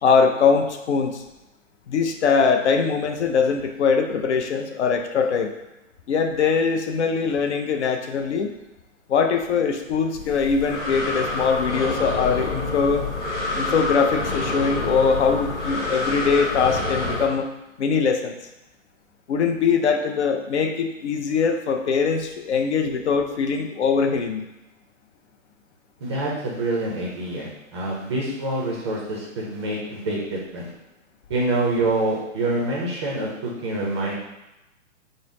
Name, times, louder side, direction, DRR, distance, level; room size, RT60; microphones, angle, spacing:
voice 1, 0.0-1.2 1.9-5.5 6.1-8.5 9.1-13.0 13.5-17.5 17.8-18.3 19.3-24.5, left 5 dB, 60° left, 5 dB, 0.5 m, -22 dB
Breathing, 10.1-17.3, left 2 dB, 25° left, 1.0 m, -27 dB
voice 2, 26.0-30.7 31.3-34.2, right 2 dB, 20° right, -4 dB, 0.4 m, -26 dB
3.8 x 2.0 x 3.6 m, 0.96 s
hypercardioid pair, 140°, 40 cm